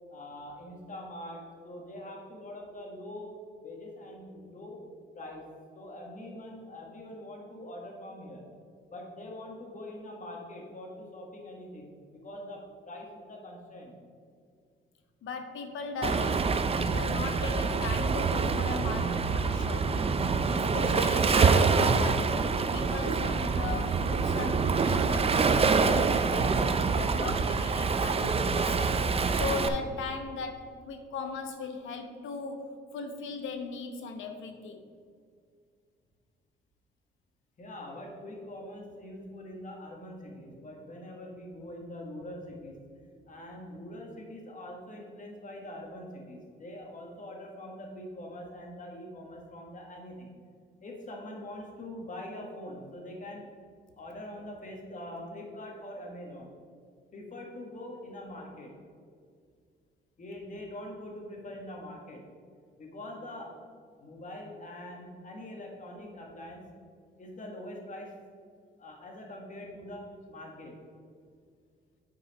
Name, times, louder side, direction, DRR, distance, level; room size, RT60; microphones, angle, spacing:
voice 1, 0.1-4.8 5.1-5.5 5.7-8.5 8.9-14.0 37.6-42.8 43.3-50.3 50.8-53.4 54.0-56.5 57.1-58.7 60.2-62.2 62.8-63.5 64.0-66.7 67.2-68.1 68.8-70.8, left 1 dB, 40° left, 0 dB, 1.8 m, -43 dB
voice 2, 15.2-20.2 20.5-29.0 29.3-34.8, left 4 dB, 80° left, 6 dB, 1.0 m, -38 dB
Waves surf, 16.0-29.7, right 4 dB, 30° right, 0.5 m, -26 dB
8.8 x 4.8 x 4.3 m, 2.1 s
cardioid pair, 90°, 20 cm